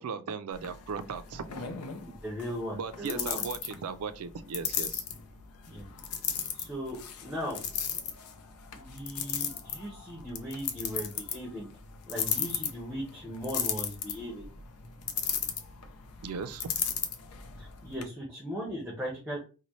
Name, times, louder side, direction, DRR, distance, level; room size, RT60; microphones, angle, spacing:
voice 1, 0.0-1.5 2.7-5.0 16.2-16.7, right 5 dB, 75° right, 0.4 m, -37 dB
sound 1, 0.5-18.0, left 8 dB, 80° left, 0.6 m, -36 dB
voice 2, 2.0-3.5 5.7-5.9 6.5-7.6 8.7-11.7 12.1-14.5 17.6-19.4, equal, 5° right, 0.9 m, -38 dB
4.0 x 2.2 x 3.1 m
head